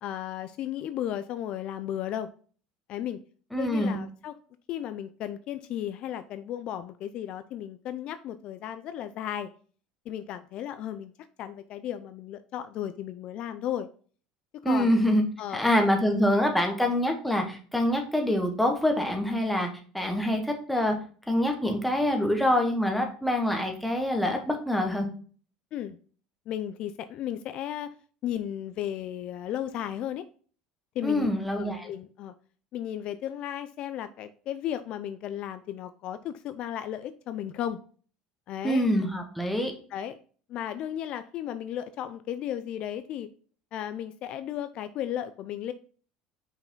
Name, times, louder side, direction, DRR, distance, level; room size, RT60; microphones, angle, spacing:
voice 1, 0.0-2.3 2.9-3.2 3.5-4.3 4.7-9.5 10.1-11.1 11.4-13.9 14.6-15.0 15.4-15.6 25.7-26.0 26.5-27.9 28.2-30.2 31.0-32.3 32.7-37.8 38.5-38.9 39.9-40.2 40.5-43.3 43.7-45.7, left 11 dB, 55° left, 11 dB, 0.4 m, -34 dB
voice 2, 3.5-4.0 14.6-15.2 15.5-19.7 19.9-21.0 21.3-25.1 31.0-31.9 38.6-39.7, left 1 dB, ahead, 2 dB, 1.2 m, -25 dB
5.5 x 4.7 x 3.7 m, 0.42 s
supercardioid pair, 120°, 2 cm